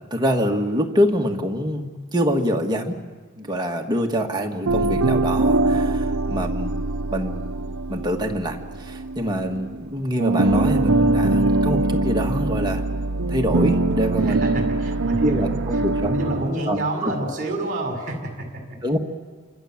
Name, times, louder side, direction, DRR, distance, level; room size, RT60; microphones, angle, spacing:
voice 1, 0.1-3.0 3.4-6.7 7.1-7.4 7.9-12.8 13.3-14.7 15.2-16.1 16.7-17.1 18.8-19.0, equal, 20° right, 1 dB, 1.9 m, -25 dB
sound 1, 4.6-9.9 10.2-16.5, right 2 dB, 60° right, 0.8 m, -22 dB
voice 2, 14.3-15.5 16.0-18.6, right 1 dB, 35° right, 3 dB, 5.4 m, -28 dB
30.0 x 25.5 x 7.5 m, 1.4 s
head